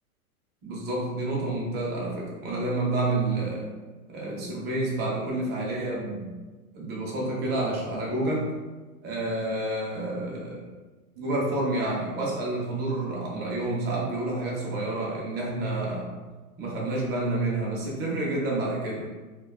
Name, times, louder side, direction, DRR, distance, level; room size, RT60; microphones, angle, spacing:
voice 1, 0.6-3.7 4.1-6.3 6.7-8.5 9.0-10.7 11.2-16.2 16.6-19.1, right 2 dB, 25° right, -4 dB, 0.5 m, -29 dB
2.5 x 2.2 x 2.2 m, 1.3 s
hypercardioid pair, 130°, 45 cm